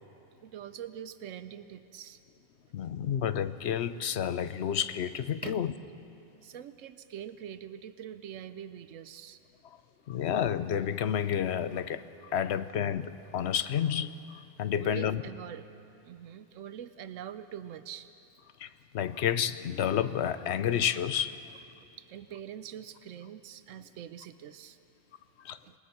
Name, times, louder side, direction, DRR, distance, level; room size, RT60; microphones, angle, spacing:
voice 1, 0.4-2.2 5.4-5.6 6.4-9.4 14.7-15.7 16.0-18.1 22.0-24.8 25.6-25.7, right 9 dB, 90° right, 11 dB, 1.0 m, -44 dB
voice 2, 2.7-5.7 10.1-12.0 12.3-14.1 14.6-15.2 18.6-18.7 18.9-21.3 25.4-25.6, left 9 dB, 65° left, 13 dB, 0.9 m, -30 dB
27.5 x 19.0 x 5.9 m, 2.7 s
omnidirectional pair, 1.3 m